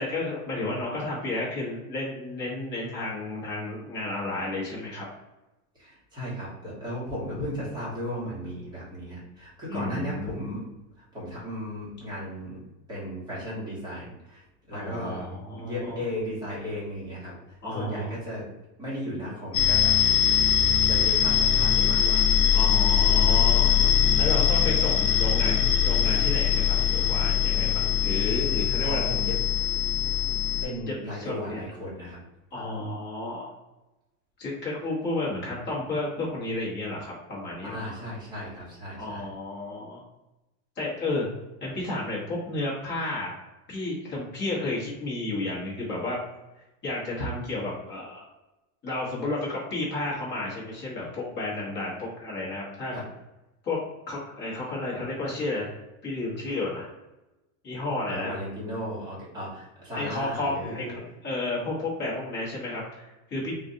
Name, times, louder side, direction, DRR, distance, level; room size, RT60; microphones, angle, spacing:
voice 1, 0.0-5.1 9.7-10.4 14.7-16.0 17.6-18.2 22.5-23.9 24.2-29.1 30.9-31.6 32.5-33.5 34.4-38.0 39.0-40.0 40.8-41.3 41.6-43.3 43.7-46.2 46.8-48.2 48.8-52.9 53.6-53.8 54.1-55.6 56.0-56.9 57.6-58.3 59.9-63.5, left 2 dB, 25° left, -5 dB, 1.0 m, -32 dB
voice 2, 5.7-10.6 11.0-12.6 12.9-15.3 15.6-17.3 17.7-18.4 18.8-20.0 20.9-22.2 28.8-29.4 30.6-32.2 37.6-39.3 52.9-53.0 58.1-61.0, equal, 10° right, -8 dB, 1.2 m, -35 dB
sound 1, 19.5-30.7, left 8 dB, 85° left, 0.7 m, -22 dB
3.6 x 2.5 x 2.6 m, 0.99 s
supercardioid pair, 155°, 45 cm